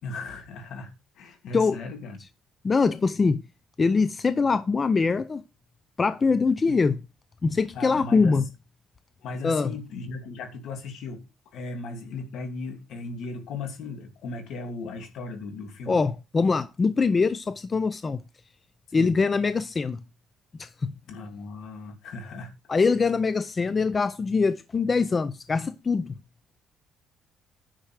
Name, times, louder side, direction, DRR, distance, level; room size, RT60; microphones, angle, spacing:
voice 1, 0.0-2.2 6.6-6.8 7.7-8.4 9.2-11.2 11.5-16.0 18.9-19.2 21.1-22.5, left 3 dB, 65° left, 2.9 m, -37 dB
voice 2, 2.6-3.4 3.8-5.4 6.0-7.0 7.4-8.5 9.4-9.7 15.9-18.2 18.9-20.0 20.5-20.9 22.7-26.1, left 4 dB, 25° left, 0.5 m, -23 dB
10.0 x 6.0 x 4.8 m
cardioid pair, 160°, 0 cm